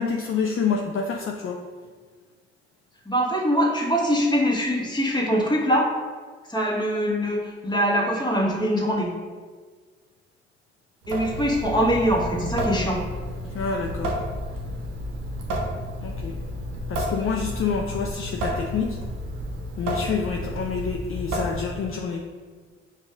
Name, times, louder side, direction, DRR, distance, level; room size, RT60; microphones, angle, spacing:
voice 1, 0.0-1.7 13.5-14.2 16.0-16.4 16.9-19.0 19.8-22.2, left 5 dB, 45° left, 1 dB, 0.5 m, -28 dB
voice 2, 3.0-5.9 6.5-9.1 11.1-13.0, equal, 15° left, -2 dB, 1.4 m, -23 dB
Water tap faucet / Sink (filling or washing) / Drip, 11.0-22.0, equal, 90° right, 0.6 m, -31 dB
5.2 x 2.7 x 3.6 m, 1.5 s
hypercardioid pair, 45°, 30 cm